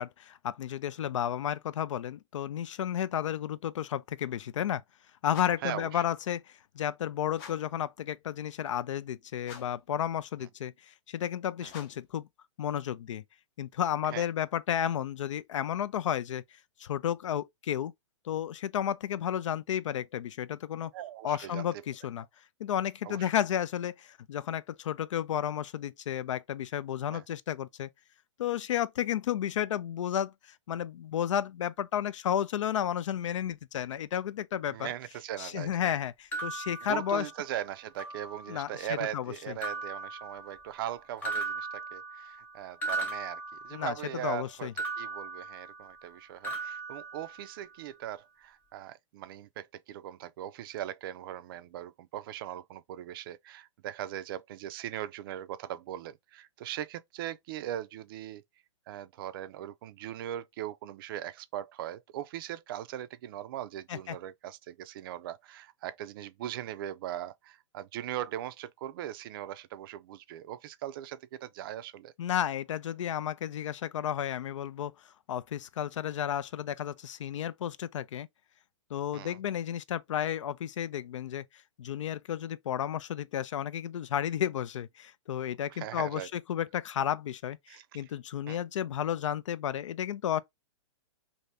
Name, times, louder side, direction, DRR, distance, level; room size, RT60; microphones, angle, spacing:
voice 1, 0.0-4.8 5.2-6.4 6.8-12.3 12.6-13.2 13.6-16.4 16.8-17.9 18.3-20.9 21.2-22.2 22.6-27.9 28.4-34.9 35.4-37.3 38.5-38.9 39.1-39.6 43.7-43.9 44.2-44.7 63.9-64.2 72.2-74.9 75.3-78.3 78.9-81.4 81.8-90.4, left 10 dB, 75° left, 0.4 m, -32 dB
sound 1, 5.3-5.8 7.3-7.8 9.4-9.9 11.7-12.2, left 7 dB, 40° left, 0.7 m, -48 dB
voice 2, 5.6-6.0 11.6-11.7 14.1-14.3 20.9-21.7 23.0-23.3 27.1-27.2 34.7-36.0 36.8-44.7 45.0-58.4 58.9-72.1 79.1-79.4 85.7-86.3 87.7-88.0 88.5-88.6, right 12 dB, 45° right, 0.4 m, -39 dB
sound 2, 36.3-37.6 38.0-38.8 39.6-40.9 41.2-44.2 44.8-46.1 46.4-47.8, right 3 dB, 10° left, 0.8 m, -38 dB
2.8 x 2.6 x 3.2 m
hypercardioid pair, 140°, 16 cm